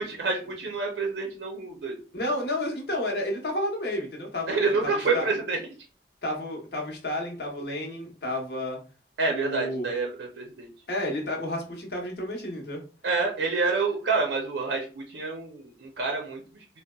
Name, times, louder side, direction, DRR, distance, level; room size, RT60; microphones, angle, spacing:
voice 1, 0.0-2.0 4.5-5.6 9.2-10.7 13.0-16.6, right 4 dB, 75° right, 1 dB, 0.5 m, -28 dB
voice 2, 2.1-5.3 6.2-8.8 9.3-9.9 10.9-12.8, left 1 dB, 60° left, 0 dB, 0.8 m, -31 dB
3.8 x 2.0 x 2.2 m, 0.36 s
head